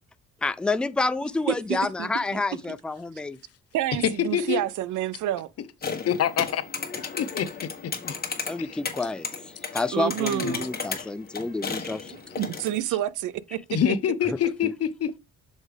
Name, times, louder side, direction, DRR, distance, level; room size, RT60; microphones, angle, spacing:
voice 1, 0.4-3.4 8.4-12.2, left 3 dB, 5° left, 0.3 m, -29 dB
voice 2, 1.5-2.4 3.7-5.5 9.9-10.7 12.1-13.6, right 13 dB, 80° right, 0.5 m, -29 dB
voice 3, 4.0-4.6 6.1-6.6 7.0-8.2 8.6-8.8 10.4-10.6 11.0-11.1 13.7-15.2, left 9 dB, 55° left, 0.7 m, -26 dB
sound 1, 5.8-12.8, left 5 dB, 30° left, 1.4 m, -34 dB
6.4 x 4.8 x 3.3 m
cardioid pair, 90°, 30 cm